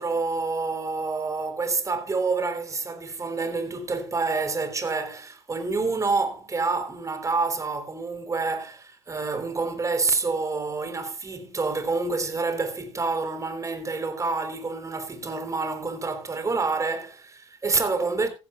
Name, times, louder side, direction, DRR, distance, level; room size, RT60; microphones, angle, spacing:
voice 1, 0.0-18.3, right 4 dB, 20° right, 3.7 m, -28 dB
15.5 x 15.0 x 2.4 m
hypercardioid pair, 70°, 14 cm